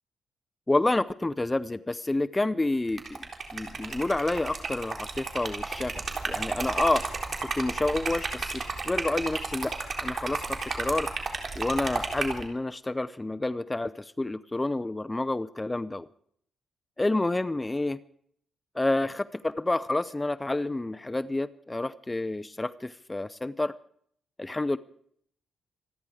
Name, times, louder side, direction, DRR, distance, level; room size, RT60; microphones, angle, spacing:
voice 1, 0.7-3.0 3.5-7.1 7.4-9.7 10.0-11.1 11.6-16.1 17.0-18.0 18.7-23.7 24.4-24.8, left 2 dB, 15° left, 15 dB, 0.6 m, -29 dB
Liquid, 2.9-12.4, right 4 dB, 45° right, 3.9 m, -33 dB
26.5 x 10.5 x 4.9 m, 0.64 s
cardioid pair, 95°, 0 cm